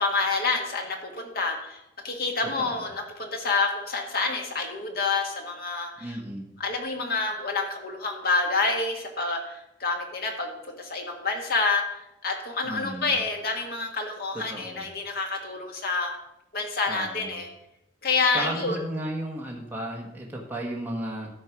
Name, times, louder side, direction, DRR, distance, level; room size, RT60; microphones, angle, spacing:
voice 1, 0.0-6.2 6.6-16.2 16.5-17.5 18.0-18.8, left 3 dB, 60° left, 2 dB, 1.8 m, -28 dB
voice 2, 6.0-6.5 12.6-13.2 14.3-14.9 16.9-17.4 18.3-21.3, right 1 dB, 10° right, -2 dB, 1.4 m, -34 dB
13.0 x 4.5 x 6.0 m, 0.86 s
head